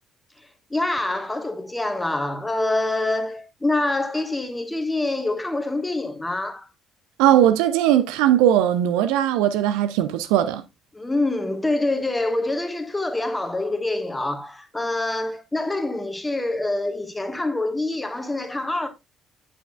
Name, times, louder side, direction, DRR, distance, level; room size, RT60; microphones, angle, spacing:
voice 1, 0.7-6.7 10.9-18.9, left 2 dB, 10° left, 1.4 m, -26 dB
voice 2, 7.2-10.6, right 11 dB, 65° right, 0.5 m, -19 dB
8.8 x 6.6 x 2.3 m
figure-of-eight pair, 50°, 0 cm